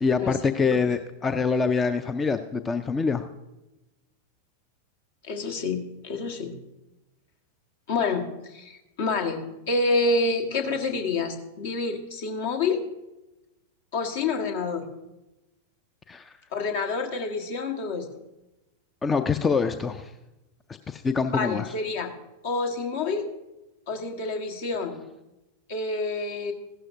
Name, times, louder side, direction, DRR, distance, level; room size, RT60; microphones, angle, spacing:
voice 1, 0.0-3.3 16.1-16.4 19.0-20.1 20.9-21.7, left 5 dB, 15° left, 11 dB, 0.4 m, -25 dB
voice 2, 5.2-6.5 7.9-9.4 9.7-12.8 13.9-14.9 16.5-18.1 21.3-22.1 22.4-23.3 23.9-25.0 25.7-26.5, left 3 dB, 55° left, 3 dB, 1.4 m, -28 dB
15.5 x 12.0 x 2.6 m, 0.99 s
figure-of-eight pair, 90°, 0 cm